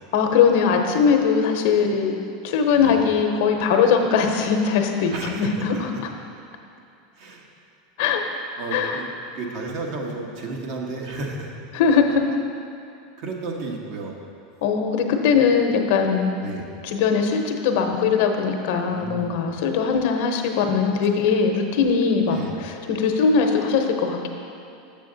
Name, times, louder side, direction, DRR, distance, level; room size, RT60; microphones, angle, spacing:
voice 1, 0.1-2.1 2.4-6.1 8.0-8.2 8.7-9.0 11.7-12.2 14.6-16.3 16.8-24.3, left 6 dB, 70° left, 4 dB, 0.8 m, -20 dB
voice 2, 5.1-5.5 7.2-7.4 8.6-9.0 9.3-11.5 13.2-14.1 16.4-16.6 18.9-19.4 22.3-22.5, right 3 dB, 60° right, 0 dB, 1.2 m, -32 dB
7.0 x 6.9 x 3.9 m, 2.6 s
hypercardioid pair, 105°, 0 cm